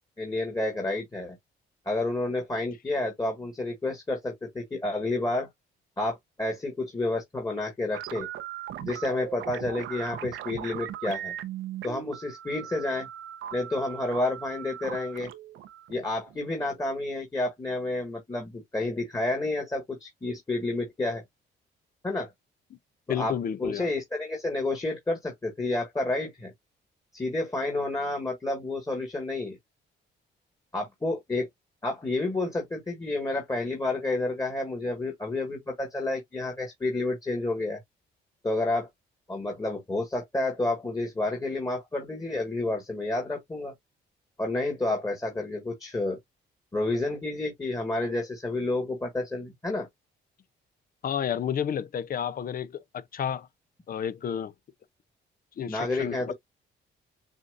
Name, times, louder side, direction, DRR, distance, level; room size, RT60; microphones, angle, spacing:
voice 1, 0.2-1.4 1.9-5.5 6.0-8.3 8.8-11.3 11.8-13.1 13.5-15.3 15.9-21.2 22.0-22.3 23.2-23.3 23.6-26.5 27.1-29.6 30.7-31.5 31.8-37.8 38.4-38.9 39.3-43.7 44.4-46.2 46.7-49.9 55.7-56.3, left 2 dB, 15° left, 1.7 m, -30 dB
sound 1, 7.9-16.9, right 11 dB, 80° right, 0.7 m, -39 dB
voice 2, 23.1-23.9 51.0-53.5 53.9-54.5 55.6-56.3, left 8 dB, 45° left, 0.6 m, -31 dB
7.2 x 2.6 x 2.5 m
cardioid pair, 90°, 20 cm